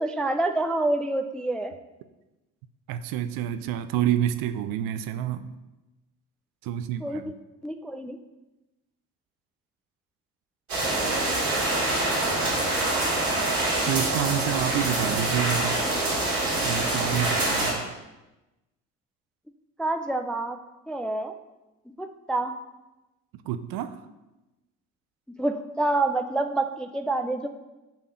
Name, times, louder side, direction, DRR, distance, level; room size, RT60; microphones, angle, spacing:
voice 1, 0.0-1.7 7.0-7.2 7.6-8.2 19.8-20.6 20.9-21.3 22.0-22.5 25.4-27.5, right 2 dB, ahead, 6 dB, 0.3 m, -27 dB
voice 2, 2.9-5.5 6.6-7.3 13.8-15.9 16.6-18.0 23.3-24.0, right 10 dB, 55° right, 10 dB, 0.7 m, -28 dB
sound 1, 10.7-17.7, right 2 dB, 85° right, 2.3 m, -25 dB
10.5 x 3.6 x 5.7 m, 1.0 s
figure-of-eight pair, 55°, 43 cm